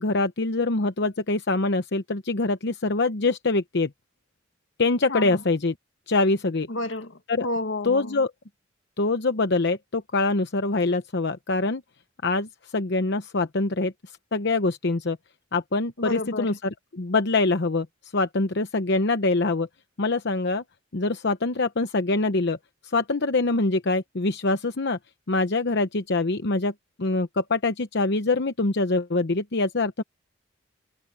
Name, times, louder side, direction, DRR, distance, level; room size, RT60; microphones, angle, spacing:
voice 1, 0.0-3.9 4.8-5.7 6.1-6.7 7.3-7.5 7.8-8.3 9.0-11.8 12.2-15.2 15.5-19.7 20.0-20.6 20.9-22.6 22.8-25.0 25.3-26.7 27.0-30.0, left 3 dB, 60° left, 0.9 m, -24 dB
voice 2, 5.1-5.4 6.7-8.2 16.0-16.6, left 2 dB, 75° left, 1.7 m, -31 dB
head